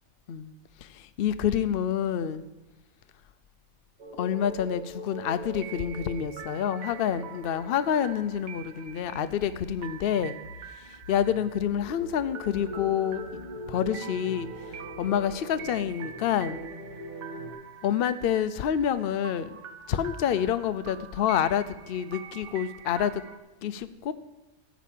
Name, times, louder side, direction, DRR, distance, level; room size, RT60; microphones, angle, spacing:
voice 1, 0.8-2.5 4.2-10.4 10.8-13.2 13.7-16.6 17.8-19.6 19.9-23.2 23.6-24.1, left 9 dB, 65° left, 12 dB, 0.5 m, -28 dB
sound 1, 4.0-9.7 10.0-17.5, right 1 dB, 35° right, 1.7 m, -42 dB
sound 2, 5.5-23.4, right 8 dB, 80° right, 1.4 m, -46 dB
14.5 x 5.2 x 8.3 m, 1.1 s
omnidirectional pair, 1.5 m